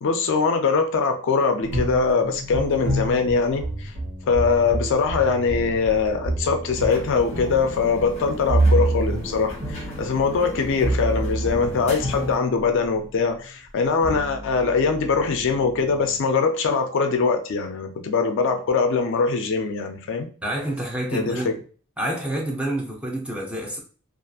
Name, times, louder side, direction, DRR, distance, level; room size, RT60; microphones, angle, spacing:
voice 1, 0.0-3.9 4.3-20.3 21.1-21.5, left 5 dB, 55° left, 0.4 m, -22 dB
sound 1, 1.6-13.1 13.8-16.2, right 2 dB, 70° right, 1.0 m, -28 dB
sound 2, 6.7-12.4, left 1 dB, 30° left, 0.9 m, -35 dB
voice 2, 20.4-21.6 22.0-23.8, right 1 dB, 5° right, 0.6 m, -28 dB
2.7 x 2.4 x 2.3 m
head